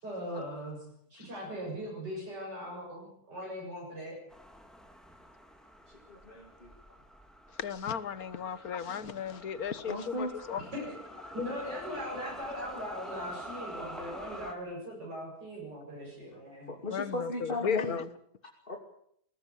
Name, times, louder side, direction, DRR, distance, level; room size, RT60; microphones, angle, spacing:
voice 1, 0.0-0.8 1.1-4.2 10.6-11.0 11.3-16.7, equal, 90° right, 8.2 m, -40 dB
sound 1, 4.3-14.5, equal, ahead, 2.9 m, -47 dB
voice 2, 5.9-6.7 9.9-10.3 16.3-16.4 16.7-18.0 18.7-18.8, left 2 dB, 30° left, 3.1 m, -36 dB
voice 3, 7.6-10.6 11.2-11.4 16.9-18.1, left 7 dB, 60° left, 1.7 m, -35 dB
22.0 x 19.0 x 8.4 m
omnidirectional pair, 1.8 m